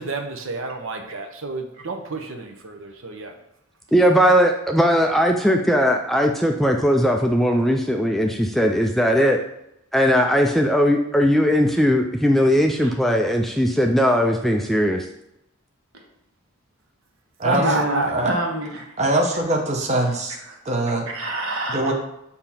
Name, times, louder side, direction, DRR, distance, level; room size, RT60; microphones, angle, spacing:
voice 1, 0.0-3.3 17.4-18.1, right 3 dB, 60° right, 4 dB, 0.8 m, -29 dB
voice 2, 3.9-9.4 9.9-15.1, equal, ahead, 2 dB, 0.3 m, -19 dB
voice 3, 17.5-18.9 20.0-20.1 20.5-20.6 21.1-21.9, right 1 dB, 80° right, 1 dB, 1.3 m, -27 dB
voice 4, 19.0-20.4 20.6-21.1 21.7-21.9, right 1 dB, 30° right, 1 dB, 0.8 m, -22 dB
6.8 x 2.8 x 5.6 m, 0.83 s
head